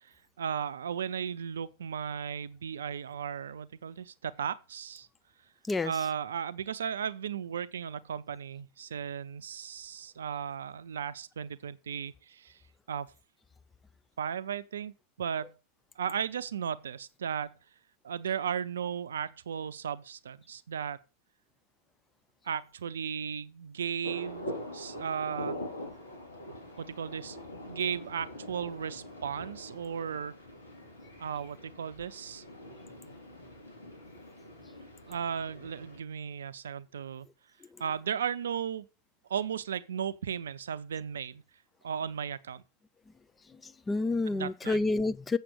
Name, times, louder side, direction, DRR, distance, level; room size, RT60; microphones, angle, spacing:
voice 1, 0.4-5.1 5.8-12.6 12.9-13.1 14.2-15.5 16.0-17.6 18.0-21.0 22.4-25.6 26.8-27.4 27.7-30.3 31.2-32.4 35.1-37.3 37.8-38.9 39.3-41.4 41.8-42.6 44.3-44.8, right 8 dB, 65° right, 0.6 m, -35 dB
sound 1, 24.0-36.0, left 1 dB, 70° left, 3.2 m, -44 dB
voice 2, 43.6-45.4, left 3 dB, 15° left, 0.6 m, -29 dB
7.6 x 7.1 x 6.5 m
figure-of-eight pair, 90°, 0 cm